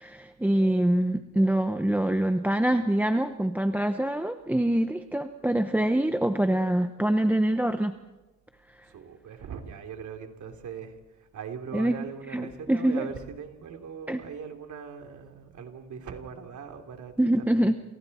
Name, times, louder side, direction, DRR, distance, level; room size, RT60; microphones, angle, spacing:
voice 1, 0.0-7.9 11.7-12.0 12.3-13.1 14.1-14.2 17.2-17.7, right 1 dB, 5° right, 8 dB, 0.7 m, -25 dB
voice 2, 8.9-17.3 17.6-17.7, right 6 dB, 75° right, 4 dB, 3.1 m, -40 dB
29.5 x 28.5 x 4.2 m, 1.1 s
wide cardioid pair, 155°, 30 cm